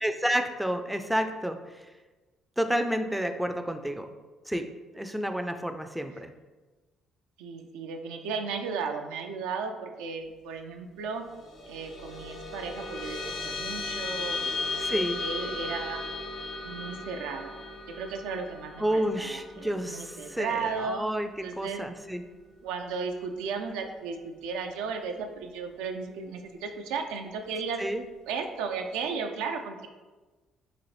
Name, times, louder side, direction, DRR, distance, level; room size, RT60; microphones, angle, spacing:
voice 1, 0.0-1.9 2.6-4.1 4.5-6.3 14.8-15.2 18.8-22.2 27.8-28.0, equal, 5° right, 7 dB, 0.3 m, -30 dB
voice 2, 7.4-11.2 11.7-16.0 16.6-17.6 18.0-21.1 21.4-21.9 22.6-27.8 28.3-29.9, right 5 dB, 85° right, 4 dB, 0.3 m, -35 dB
sound 1, 11.2-22.0, left 3 dB, 70° left, 0.7 m, -36 dB
3.9 x 2.4 x 3.1 m, 1.2 s
supercardioid pair, 65°, 0 cm